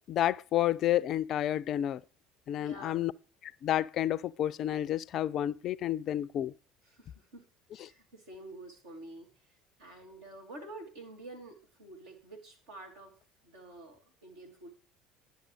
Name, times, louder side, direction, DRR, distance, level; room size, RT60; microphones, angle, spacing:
voice 1, 0.0-2.0 2.5-3.1 3.4-6.5 7.8-7.9, left 12 dB, 45° left, 0.3 m, -30 dB
voice 2, 2.5-3.0 6.9-7.4 7.7-9.3 9.8-13.2 13.4-14.7, right 2 dB, 70° right, 2.6 m, -48 dB
10.5 x 6.7 x 4.7 m
figure-of-eight pair, 65°, 0 cm